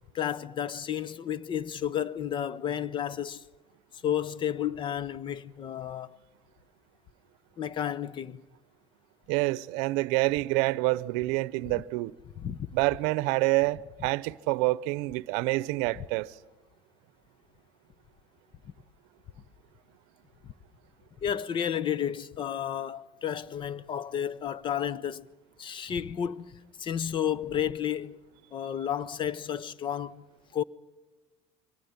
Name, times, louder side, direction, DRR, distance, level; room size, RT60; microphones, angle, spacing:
voice 1, 0.1-3.4 4.0-6.2 7.6-8.4 12.4-12.7 16.0-16.1 18.6-18.7 20.4-20.5 21.2-25.3 25.6-28.2 28.5-30.2 30.5-30.6, left 9 dB, 40° left, 0.8 m, -32 dB
voice 2, 9.3-12.1 12.7-16.3, right 21 dB, 80° right, 0.7 m, -27 dB
24.0 x 18.5 x 9.6 m
supercardioid pair, 110°, 13 cm